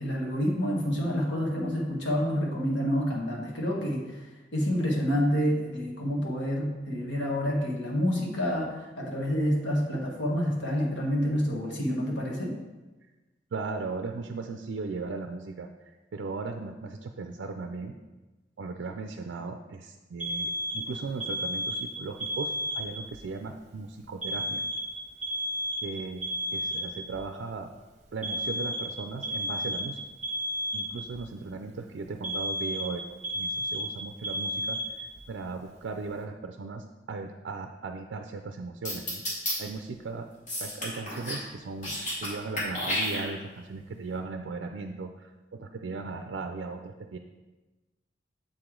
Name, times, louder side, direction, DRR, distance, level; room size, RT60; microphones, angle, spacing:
voice 1, 0.0-4.2 4.5-12.6, equal, 80° left, -2 dB, 1.4 m, -28 dB
voice 2, 13.5-18.0 18.6-24.6 25.8-26.2 26.5-27.7 28.1-30.0 30.7-39.2 39.6-40.3 40.6-47.2, right 4 dB, 70° right, 5 dB, 0.4 m, -37 dB
Alarm, 20.2-23.2 24.2-27.2 28.2-31.2 32.2-35.2, equal, 40° right, 0.9 m, -32 dB
sound 1, 38.8-39.5 40.5-41.4 41.7-42.3 42.6-43.6, left 1 dB, 40° left, 1.9 m, -31 dB
7.3 x 4.9 x 3.7 m, 1.2 s
head